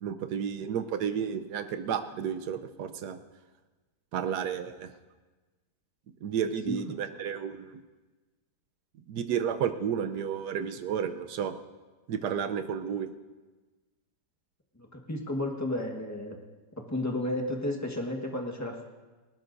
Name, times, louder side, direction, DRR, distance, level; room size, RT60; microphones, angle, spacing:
voice 1, 0.0-3.2 4.1-4.9 6.2-7.8 9.1-11.5 12.1-13.1, right 8 dB, 70° right, 8 dB, 1.3 m, -32 dB
voice 2, 14.7-16.4 16.8-18.8, left 1 dB, 10° left, 1 dB, 1.3 m, -32 dB
20.0 x 18.5 x 2.6 m, 1.3 s
omnidirectional pair, 1.8 m